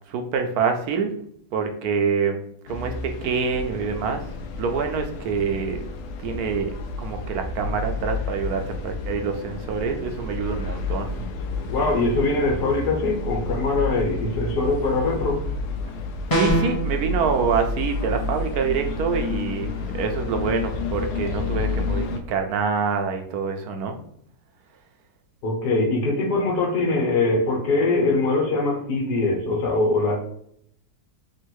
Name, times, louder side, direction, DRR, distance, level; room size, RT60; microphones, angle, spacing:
voice 1, 0.1-1.1 1.5-2.4 2.7-4.3 4.6-5.8 6.2-6.7 7.0-11.3 16.3-24.0, right 5 dB, 75° right, 5 dB, 1.0 m, -26 dB
sound 1, 2.7-22.2, left 3 dB, 70° left, 0.8 m, -30 dB
voice 2, 11.7-15.4 25.4-30.2, left 3 dB, 85° left, 0 dB, 1.6 m, -22 dB
sound 2, 16.3-16.8, equal, 20° left, 0.7 m, -20 dB
3.6 x 2.4 x 4.5 m, 0.68 s
omnidirectional pair, 1.7 m